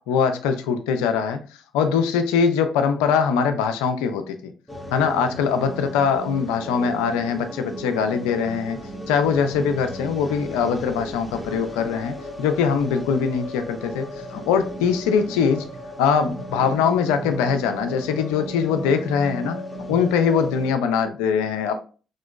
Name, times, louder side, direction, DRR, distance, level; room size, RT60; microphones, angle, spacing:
voice 1, 0.1-1.4 1.7-4.5 4.9-8.8 9.1-14.1 14.3-15.7 16.0-19.6 19.9-21.8, left 6 dB, 75° left, 8 dB, 0.3 m, -22 dB
sound 1, 4.7-20.7, equal, 15° left, 0.7 m, -36 dB
2.8 x 2.5 x 2.3 m, 0.37 s
hypercardioid pair, 45°, 0 cm